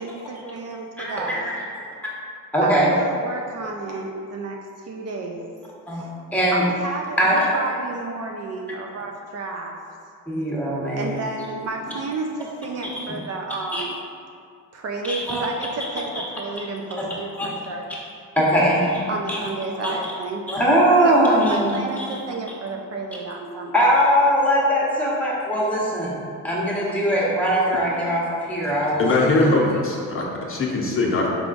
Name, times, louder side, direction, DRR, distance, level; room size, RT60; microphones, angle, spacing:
voice 1, 0.0-1.6 2.6-4.6 4.9-5.5 5.9-6.1 6.5-9.8 10.9-14.0 14.7-18.0 19.1-20.4 21.0-23.7, right 3 dB, 50° right, 1 dB, 0.4 m, -31 dB
voice 2, 1.0-1.9 2.5-2.9 5.9-6.6 7.2-7.4 10.3-11.2 12.8-13.0 13.7-13.8 15.1-15.5 17.0-17.1 17.4-17.6 18.4-19.4 19.8-20.0 20.5-21.7 22.0-22.2 23.7-29.0, equal, 5° left, -6 dB, 1.0 m, -21 dB
voice 3, 29.0-31.3, left 2 dB, 40° left, -2 dB, 0.6 m, -21 dB
4.8 x 3.7 x 2.5 m, 2.3 s
cardioid pair, 90°, 34 cm